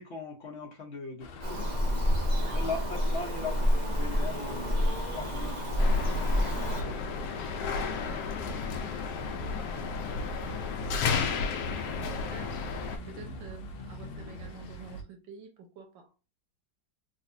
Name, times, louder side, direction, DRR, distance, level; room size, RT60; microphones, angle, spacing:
voice 1, 0.0-1.7 2.5-5.9 6.7-7.1 13.1-13.4, left 3 dB, 50° left, 0.8 m, -40 dB
sound 1, 1.2-15.0, left 2 dB, 90° left, 1.3 m, -44 dB
Bird vocalization bird call bird song, 1.4-6.8, equal, 50° right, 0.5 m, -28 dB
voice 2, 2.3-3.0 8.1-12.5 13.1-16.1, right 5 dB, 85° right, 1.7 m, -50 dB
sound 2, 5.8-13.0, left 5 dB, 70° left, 1.1 m, -33 dB
4.0 x 2.4 x 2.6 m
omnidirectional pair, 2.0 m